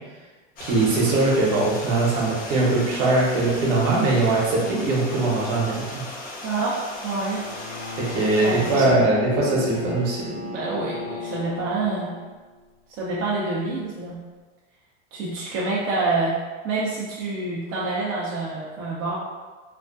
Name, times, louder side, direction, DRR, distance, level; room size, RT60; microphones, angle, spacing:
Stream, 0.6-8.9, left 2 dB, 25° left, 0.4 m, -37 dB
voice 1, 0.6-6.0 8.1-10.3, right 2 dB, 60° right, -4 dB, 0.9 m, -21 dB
voice 2, 6.4-6.8 7.0-7.4 8.3-8.9 10.3-12.1 13.0-14.2 15.1-16.4 16.6-19.2, right 3 dB, 35° right, -7 dB, 0.5 m, -27 dB
Bowed string instrument, 7.3-12.6, left 5 dB, 70° left, 1.0 m, -36 dB
2.4 x 2.1 x 2.4 m, 1.3 s
supercardioid pair, 115°, 36 cm